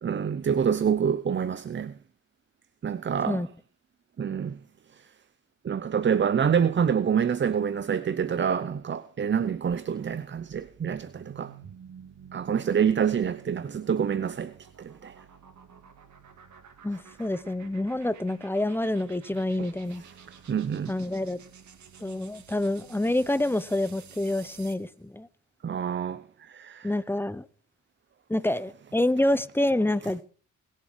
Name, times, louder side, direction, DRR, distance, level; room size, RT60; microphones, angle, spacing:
voice 1, 0.0-2.0 2.8-3.4 4.2-4.6 4.9-5.1 5.6-11.5 12.3-15.2 19.6-19.7 20.5-20.9 25.6-26.9, right 7 dB, 35° right, 0.7 m, -27 dB
sound 1, 10.2-24.9, right 7 dB, 65° right, 2.5 m, -51 dB
voice 2, 16.8-20.0 20.9-21.4 22.0-25.3 26.8-27.5 28.3-30.2, left 1 dB, 5° left, 0.9 m, -27 dB
20.5 x 7.5 x 4.7 m
cardioid pair, 75°, 31 cm